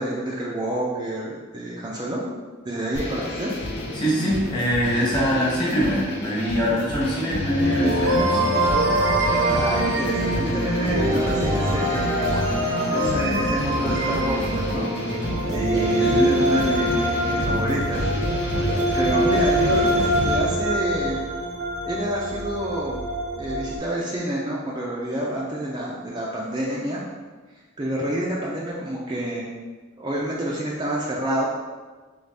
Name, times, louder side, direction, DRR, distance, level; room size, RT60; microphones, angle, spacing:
voice 1, 0.0-2.2 2.6-3.5 9.4-12.4 12.9-18.5 18.8-21.2 21.8-23.0 23.4-27.0 27.5-29.5 30.0-31.5, right 1 dB, 20° right, -5 dB, 0.5 m, -28 dB
sound 1, 2.9-20.4, left 1 dB, 60° left, 0.8 m, -29 dB
voice 2, 3.9-8.4 16.0-16.3, equal, 25° left, -6 dB, 1.3 m, -23 dB
sound 2, 7.6-23.8, right 1 dB, 75° right, 0.8 m, -24 dB
4.0 x 3.2 x 3.4 m, 1.3 s
head